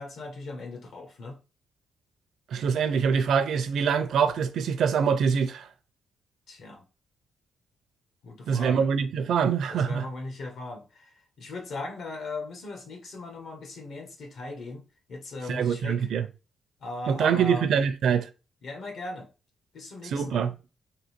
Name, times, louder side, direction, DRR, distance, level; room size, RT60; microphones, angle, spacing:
voice 1, 0.0-1.4 6.5-6.8 8.2-8.9 9.7-16.1 16.8-17.7 18.6-19.3 19.7-20.5, left 2 dB, 60° left, 1.3 m, -38 dB
voice 2, 2.5-5.7 8.5-10.1 15.5-16.3 17.1-18.3 20.1-20.5, right 7 dB, 65° right, 0.6 m, -24 dB
3.9 x 2.8 x 4.4 m
cardioid pair, 140°, 0 cm